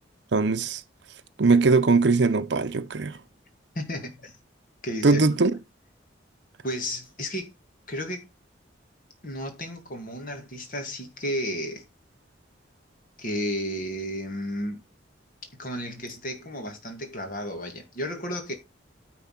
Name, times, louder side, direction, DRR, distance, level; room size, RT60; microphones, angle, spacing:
voice 1, 0.3-0.8 1.4-3.2 5.0-5.5, right 3 dB, 65° right, 0.6 m, -20 dB
voice 2, 3.7-4.4 4.8-5.2 6.6-7.5 7.9-8.3 9.2-11.8 13.2-14.8 15.6-18.5, equal, 45° left, 2.3 m, -33 dB
9.7 x 4.4 x 5.9 m
head